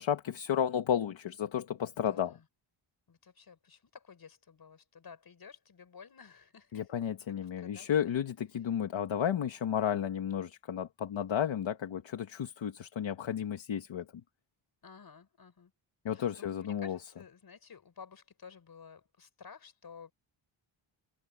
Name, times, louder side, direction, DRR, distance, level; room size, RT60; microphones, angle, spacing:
voice 1, 0.0-2.3 6.7-14.0 16.0-17.0, left 9 dB, 70° left, 1.5 m, -32 dB
voice 2, 1.9-2.5 3.1-7.0 7.4-8.1 14.8-15.7 16.1-20.1, left 6 dB, 50° left, 5.8 m, -53 dB
wide cardioid pair, 180°, 48 cm